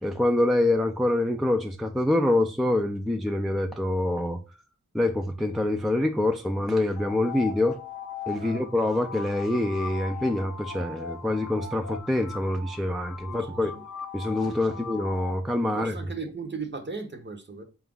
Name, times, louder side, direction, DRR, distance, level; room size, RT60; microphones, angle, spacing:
voice 1, 0.0-4.4 4.9-7.8 8.3-13.7 14.1-16.0, left 1 dB, ahead, 0.4 m, -25 dB
sound 1, 7.0-15.4, left 6 dB, 60° left, 0.5 m, -39 dB
voice 2, 13.2-13.8 14.7-14.8 15.7-17.6, right 4 dB, 35° right, 0.7 m, -37 dB
4.3 x 2.4 x 3.7 m
wide cardioid pair, 65°, 32 cm